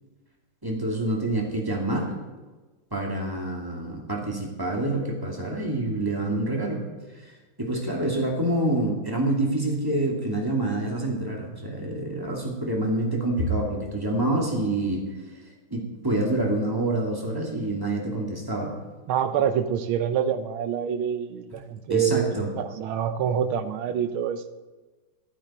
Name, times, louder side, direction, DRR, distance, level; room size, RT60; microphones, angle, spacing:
voice 1, 0.6-2.1 2.9-6.8 7.2-7.3 7.6-15.0 15.7-18.7 21.9-22.5, right 1 dB, 10° right, -1 dB, 2.5 m, -27 dB
voice 2, 19.1-24.5, right 8 dB, 75° right, 10 dB, 1.6 m, -26 dB
14.5 x 13.0 x 4.4 m, 1.3 s
omnidirectional pair, 2.3 m